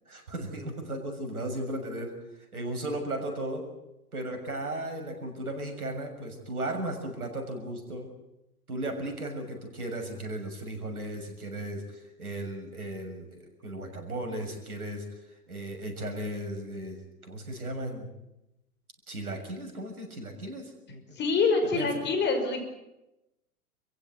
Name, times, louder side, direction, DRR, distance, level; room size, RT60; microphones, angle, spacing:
voice 1, 0.1-2.1 2.5-3.7 4.1-8.1 8.7-15.0 15.5-17.0 17.2-18.1 19.1-21.0 21.7-21.9, right 1 dB, 75° right, 4 dB, 6.8 m, -36 dB
voice 2, 21.2-22.7, left 4 dB, 25° left, 5 dB, 5.7 m, -26 dB
28.0 x 15.5 x 9.4 m, 0.93 s
figure-of-eight pair, 105°, 44 cm